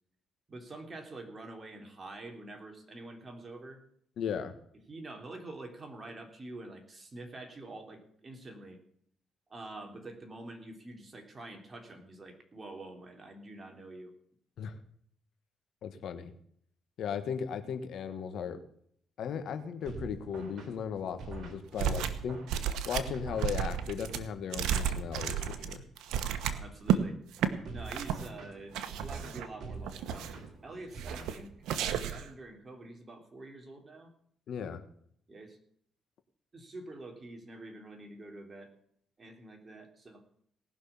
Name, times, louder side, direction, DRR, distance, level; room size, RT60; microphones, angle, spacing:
voice 1, 0.5-3.8 4.9-8.8 9.5-14.1 26.4-27.2 27.7-34.1 35.3-35.6 36.5-38.7 39.2-40.2, right 2 dB, 30° right, 4 dB, 3.4 m, -46 dB
voice 2, 4.2-4.5 14.6-14.7 15.8-16.3 17.0-18.6 19.2-22.4 22.8-25.8 34.5-34.8, left 7 dB, 70° left, 9 dB, 1.5 m, -36 dB
sound 1, 19.8-24.0 27.6-31.9, right 4 dB, 60° right, 3.2 m, -46 dB
sound 2, 21.8-22.2 22.5-27.0 27.3-27.5 27.9-28.3 28.7-29.5 29.9-30.5 31.0-31.4 31.7-32.3, right 9 dB, 90° right, 1.1 m, -32 dB
18.5 x 6.3 x 7.1 m, 0.65 s
cardioid pair, 90°, 0 cm